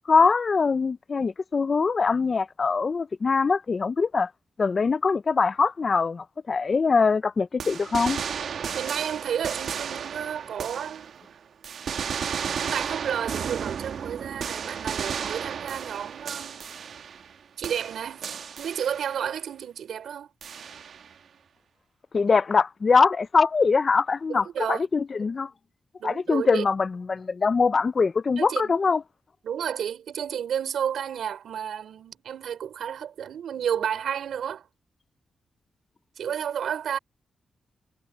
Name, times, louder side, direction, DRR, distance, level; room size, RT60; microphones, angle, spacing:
voice 1, 0.1-4.3 4.6-8.2 22.1-25.5 26.0-29.0, left 4 dB, 40° left, 0.4 m, -23 dB
sound 1, 7.6-11.3 11.6-17.4 17.6-19.3 20.4-21.1, right 7 dB, 70° right, 1.4 m, -33 dB
voice 2, 8.7-11.4 12.6-16.7 17.6-18.3 18.6-20.3 24.3-24.9 26.0-26.6 28.4-28.7 29.4-34.7 36.2-37.0, right 8 dB, 85° right, 5.2 m, -31 dB
wide cardioid pair, 110°, 0 cm